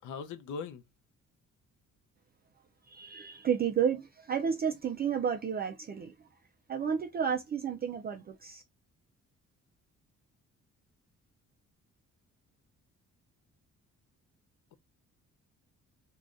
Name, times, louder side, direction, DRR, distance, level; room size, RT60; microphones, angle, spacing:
voice 1, 0.0-0.8, left 5 dB, 80° left, 0.6 m, -39 dB
voice 2, 2.9-6.3 6.7-8.6, right 7 dB, 35° right, 0.4 m, -32 dB
3.6 x 2.3 x 2.4 m
cardioid pair, 150°, 30 cm